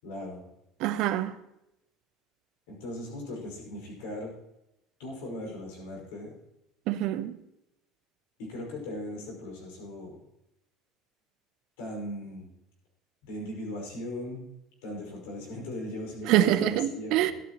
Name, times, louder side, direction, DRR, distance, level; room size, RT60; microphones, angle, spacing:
voice 1, 0.0-0.4 2.7-4.3 5.0-6.4 8.4-10.2 11.8-12.5 13.2-14.5 14.8-17.3, left 1 dB, 80° left, 5.4 m, -38 dB
voice 2, 0.8-1.3 6.9-7.4 16.3-17.3, right 13 dB, 65° right, 0.8 m, -25 dB
14.5 x 12.0 x 3.0 m
supercardioid pair, 90°, 0 cm